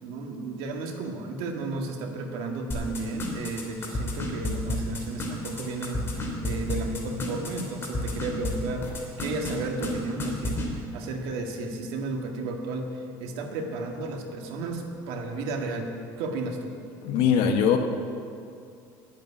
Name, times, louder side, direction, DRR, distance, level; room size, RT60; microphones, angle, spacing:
voice 1, 0.0-15.9 16.2-16.7, right 3 dB, 75° right, 3 dB, 1.9 m, -33 dB
sound 1, 2.7-8.5 8.8-9.5 9.8-9.9 10.2-10.7, left 2 dB, 25° left, 2.9 m, -30 dB
voice 2, 17.0-17.8, left 7 dB, 70° left, 4 dB, 1.4 m, -21 dB
10.5 x 8.4 x 9.8 m, 2.4 s
cardioid pair, 135°, 9 cm